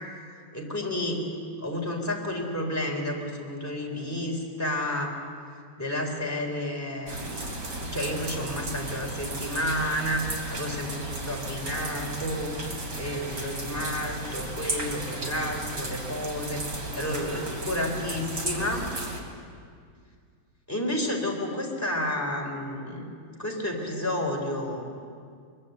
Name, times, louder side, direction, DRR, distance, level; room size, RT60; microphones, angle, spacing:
voice 1, 0.5-1.3 1.6-5.1 5.8-10.2 10.5-12.5 13.0-16.6 16.9-18.9 20.7-23.1 23.4-24.8, left 1 dB, 10° left, -1 dB, 4.0 m, -31 dB
sound 1, 7.1-19.2, right 1 dB, 50° right, 3.5 m, -34 dB
23.0 x 23.0 x 8.2 m, 2.1 s
omnidirectional pair, 2.1 m